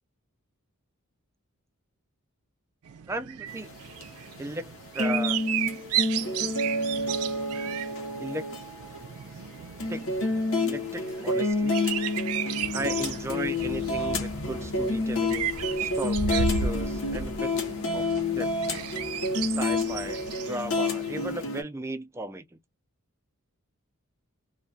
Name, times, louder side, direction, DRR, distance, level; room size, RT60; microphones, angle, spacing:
sound 1, 2.9-21.4, right 8 dB, 80° right, 0.4 m, -35 dB
voice 1, 3.1-3.8 4.4-5.4 8.2-8.4 9.9-10.1 10.6-11.8 12.7-15.5 15.8-17.5 17.9-18.0 18.3-18.5 19.4-22.4, right 2 dB, 10° right, 0.3 m, -36 dB
sound 2, 3.5-21.6, left 2 dB, 65° left, 0.8 m, -29 dB
sound 3, 12.6-20.4, equal, 30° left, 0.8 m, -45 dB
2.2 x 2.2 x 2.6 m
head